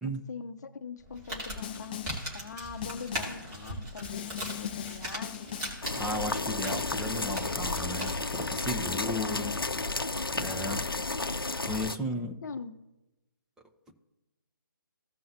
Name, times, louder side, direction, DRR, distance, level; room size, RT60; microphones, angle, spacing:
voice 1, 0.0-5.6 8.8-9.5 12.4-12.7, left 6 dB, 50° left, 10 dB, 0.8 m, -42 dB
Crumpling crinkling, 1.0-8.4, equal, 20° right, 2.7 m, -40 dB
Snare drum, 1.6-2.3 2.8-3.5 4.0-5.9, left 9 dB, 25° left, 0.4 m, -40 dB
sound 1, 5.8-12.0, left 3 dB, 85° left, 0.7 m, -32 dB
voice 2, 6.0-9.6 10.4-10.9 11.7-12.4, equal, 5° right, 0 dB, 0.7 m, -35 dB
16.5 x 5.7 x 2.7 m, 0.98 s
figure-of-eight pair, 145°, 12 cm